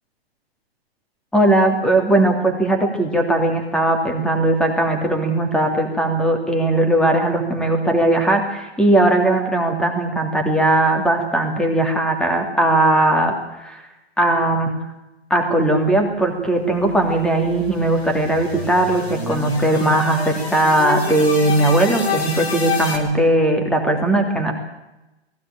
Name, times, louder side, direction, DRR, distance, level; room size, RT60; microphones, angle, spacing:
voice 1, 1.3-13.3 13.6-13.8 14.2-14.7 15.3-24.5, right 1 dB, ahead, 3 dB, 2.8 m, -18 dB
sound 1, 16.6-23.0, left 5 dB, 80° left, 5.0 m, -28 dB
18.5 x 16.5 x 9.0 m, 0.99 s
hypercardioid pair, 140°, 32 cm